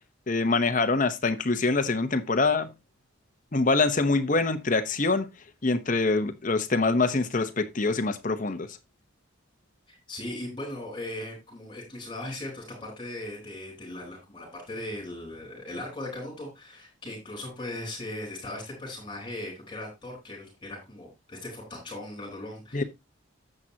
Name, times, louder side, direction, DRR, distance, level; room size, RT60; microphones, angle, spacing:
voice 1, 0.3-2.7 3.5-5.3 5.6-8.7 22.7-22.8, left 3 dB, 40° left, 0.9 m, -25 dB
voice 2, 9.9-22.8, left 1 dB, 25° left, 4.2 m, -38 dB
10.5 x 7.7 x 2.8 m
head